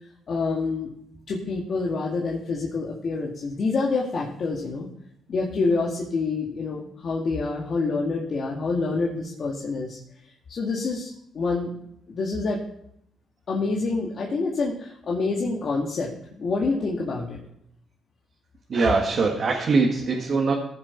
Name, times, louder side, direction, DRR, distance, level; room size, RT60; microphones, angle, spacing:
voice 1, 0.3-0.9 1.3-4.9 5.3-10.0 10.5-11.7 12.1-12.6 13.5-16.1 16.4-17.4, left 3 dB, 50° left, -2 dB, 2.0 m, -27 dB
voice 2, 18.7-20.5, right 4 dB, 50° right, 0 dB, 1.8 m, -22 dB
15.5 x 7.4 x 4.5 m, 0.72 s
cardioid pair, 90°, 0 cm